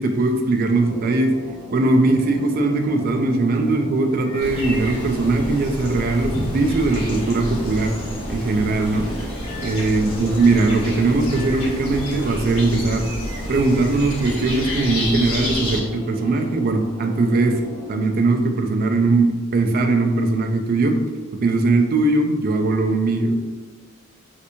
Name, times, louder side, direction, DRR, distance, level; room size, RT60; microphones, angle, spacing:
voice 1, 0.0-1.3 1.7-8.0 8.3-9.1 9.6-13.1 13.5-17.6 17.9-21.0 21.4-23.3, right 2 dB, 45° right, 4 dB, 0.3 m, -20 dB
sound 1, 0.6-18.0, equal, 15° right, 0.7 m, -37 dB
sound 2, 4.2-5.9 9.4-12.6 13.0-16.4, equal, 25° left, 0.7 m, -39 dB
sound 3, 4.4-15.8, left 1 dB, 75° left, 0.9 m, -30 dB
3.2 x 2.9 x 2.6 m, 1.4 s
head